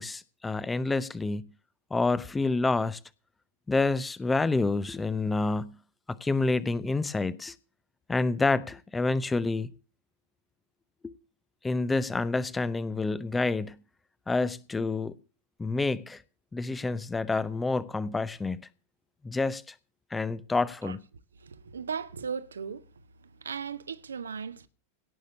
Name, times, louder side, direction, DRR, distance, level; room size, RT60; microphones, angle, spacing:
voice 1, 0.0-1.5 1.9-3.0 3.7-5.8 6.1-7.5 8.1-9.7 11.0-11.1 11.6-13.8 14.3-15.2 15.6-16.2 16.5-18.7 19.2-19.7 20.1-21.0, left 3 dB, 10° left, 0.7 m, -28 dB
voice 2, 21.4-22.9 23.2-24.7, right 6 dB, 70° right, 0.9 m, -37 dB
17.5 x 6.6 x 6.6 m
figure-of-eight pair, 90°, 0 cm